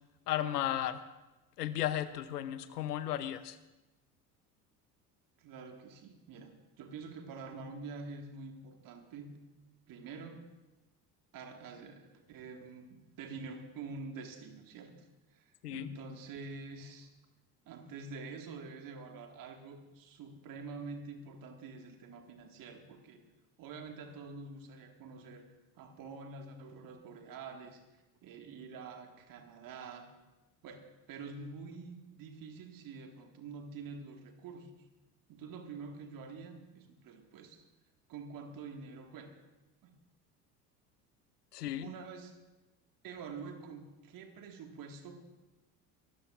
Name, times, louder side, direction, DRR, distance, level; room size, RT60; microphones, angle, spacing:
voice 1, 0.3-1.0 1.6-3.6 15.6-15.9 41.5-41.9, left 12 dB, 70° left, 13 dB, 0.9 m, -34 dB
voice 2, 5.4-9.3 9.9-10.5 11.3-15.0 15.3-17.1 17.7-23.2 23.6-25.5 25.8-27.8 28.2-30.0 30.6-34.7 35.3-37.6 38.1-39.3 39.8-39.9 41.8-42.4 43.0-45.2, right 4 dB, 40° right, 4 dB, 2.0 m, -47 dB
23.5 x 13.5 x 2.5 m, 1.0 s
figure-of-eight pair, 65°, 49 cm